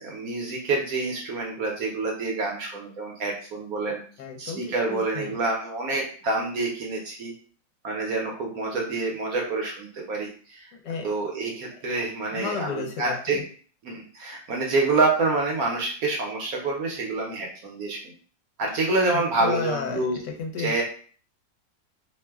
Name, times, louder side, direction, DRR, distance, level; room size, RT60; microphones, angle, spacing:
voice 1, 0.0-4.0 4.4-7.3 7.8-10.7 11.0-13.4 13.8-18.1 18.6-20.2 20.6-20.8, right 3 dB, 65° right, -1 dB, 1.0 m, -27 dB
voice 2, 4.2-5.4 10.8-11.1 12.3-13.4 19.1-20.7, left 5 dB, 75° left, 1 dB, 1.2 m, -33 dB
3.0 x 2.1 x 3.4 m, 0.42 s
omnidirectional pair, 1.9 m